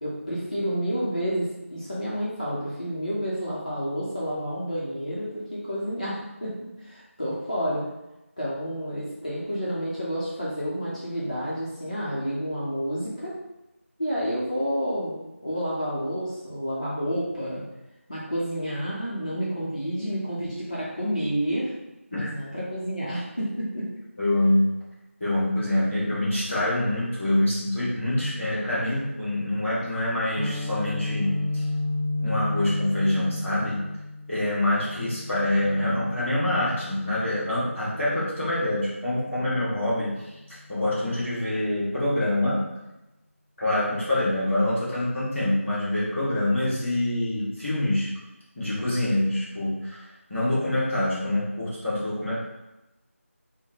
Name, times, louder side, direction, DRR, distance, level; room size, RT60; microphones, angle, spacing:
voice 1, 0.0-7.8 8.4-13.4 14.0-17.6 18.1-21.7 22.1-24.0, equal, 30° left, -9 dB, 0.6 m, -30 dB
voice 2, 24.2-24.7 25.2-31.6 32.2-33.9 34.3-42.7 43.6-48.1 48.5-50.0 50.3-52.4, left 1 dB, ahead, -30 dB, 0.9 m, -25 dB
Guitar, 30.4-38.2, left 2 dB, 75° right, 0.5 m, -32 dB
4.5 x 2.1 x 2.9 m, 0.98 s
figure-of-eight pair, 180°, 8 cm